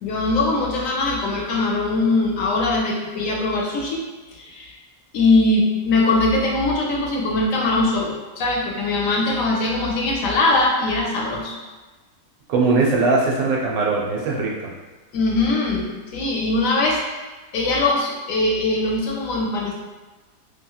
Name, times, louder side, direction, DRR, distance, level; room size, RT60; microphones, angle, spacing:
voice 1, 0.0-4.0 4.3-4.7 5.1-11.6 15.1-17.0 17.5-19.7, left 2 dB, 70° left, -2 dB, 0.9 m, -21 dB
voice 2, 12.5-14.7, right 3 dB, 80° right, -2 dB, 1.1 m, -20 dB
2.9 x 2.6 x 2.3 m, 1.2 s
omnidirectional pair, 1.5 m